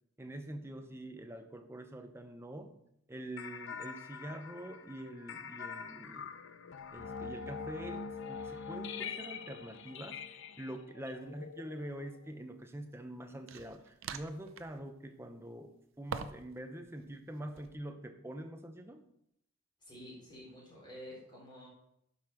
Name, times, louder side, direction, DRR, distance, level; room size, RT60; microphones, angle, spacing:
voice 1, 0.2-2.8 3.1-6.4 6.9-10.2 10.6-19.0, right 1 dB, 10° right, 6 dB, 0.7 m, -45 dB
sound 1, 3.4-12.3, left 5 dB, 60° left, 0.6 m, -44 dB
sound 2, 11.1-11.3 13.5-14.8 16.1-16.6 16.9-17.7, right 5 dB, 60° right, 0.6 m, -44 dB
voice 2, 19.8-21.7, equal, 20° left, -5 dB, 3.8 m, -50 dB
11.5 x 5.6 x 4.5 m, 0.76 s
head